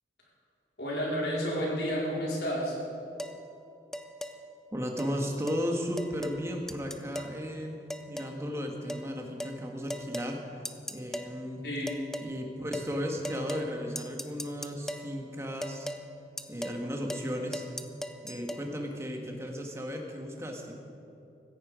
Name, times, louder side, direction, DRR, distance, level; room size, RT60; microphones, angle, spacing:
voice 1, 0.8-2.8 11.6-12.0, equal, 70° left, -4 dB, 4.6 m, -31 dB
sound 1, 3.2-3.4 3.9-4.4 5.0-5.1 5.5-5.6 6.0-6.4 6.7-7.4 7.9-8.4 8.9-9.1 9.4-9.6 9.9-10.3 10.7-11.3 11.9-12.3 12.7-12.9 13.2-13.7 14.0-15.1 15.6-16.0 16.4-16.8 17.1-17.3 17.5-18.6, equal, 5° left, 0.5 m, -38 dB
voice 2, 4.7-10.4 10.9-11.6 12.2-15.9 16.5-17.6 18.2-20.7, equal, 15° right, 1 dB, 1.6 m, -35 dB
16.5 x 14.5 x 5.1 m, 2.8 s
head